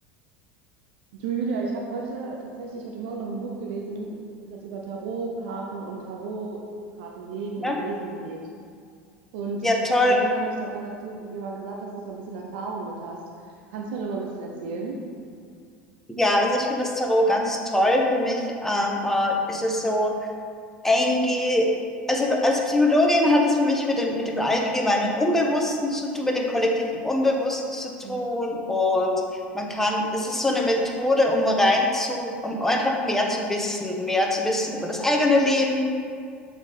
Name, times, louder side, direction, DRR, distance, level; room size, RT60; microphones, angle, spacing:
voice 1, 1.1-4.2 4.4-6.6 7.0-8.4 9.3-9.6 10.1-15.0 28.0-28.3, right 4 dB, 70° right, -1 dB, 0.8 m, -33 dB
voice 2, 9.6-10.2 16.1-20.1 20.8-21.7 22.1-29.2 29.5-35.9, left 1 dB, 5° left, 0 dB, 1.2 m, -23 dB
7.1 x 4.3 x 5.4 m, 2.3 s
hypercardioid pair, 85°, 6 cm